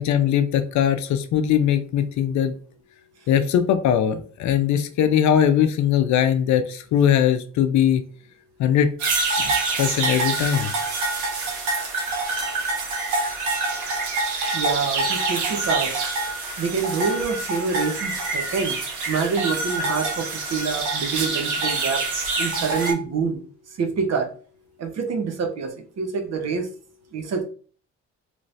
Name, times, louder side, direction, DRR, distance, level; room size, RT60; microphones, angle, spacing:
voice 1, 0.0-2.5 3.3-8.0 8.6-8.9 9.8-10.7, left 9 dB, 70° left, 9 dB, 0.5 m, -20 dB
sound 1, 9.0-22.9, right 3 dB, 80° right, 1.1 m, -26 dB
voice 2, 14.5-16.2 16.6-18.8 19.1-22.0 22.4-23.4 23.8-24.3 24.8-26.7 27.1-27.4, right 5 dB, 60° right, 4 dB, 0.8 m, -26 dB
3.1 x 2.7 x 3.1 m, 0.42 s
cardioid pair, 90°, 30 cm